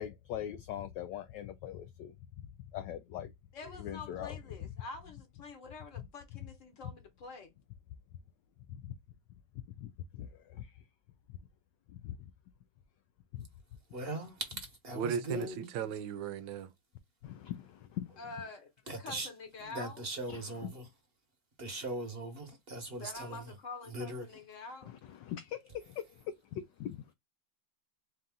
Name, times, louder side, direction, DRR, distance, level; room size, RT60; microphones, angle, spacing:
voice 1, 0.0-3.3 3.7-4.7 6.0-6.1 6.8-6.9 8.7-8.9 9.7-10.9 11.3-11.4 11.9-12.3 13.4-13.5 17.2-18.2 20.3-20.7 24.9-27.1, left 11 dB, 75° left, 1.0 m, -42 dB
voice 2, 3.5-7.5 18.2-20.0 22.9-24.9, left 3 dB, 45° left, 1.3 m, -47 dB
voice 3, 13.9-15.6 18.9-19.3 19.6-20.8 21.6-23.4 23.9-24.3, right 1 dB, 35° right, 1.2 m, -40 dB
voice 4, 14.9-16.7, right 7 dB, 75° right, 1.2 m, -36 dB
4.2 x 2.5 x 3.6 m
omnidirectional pair, 2.4 m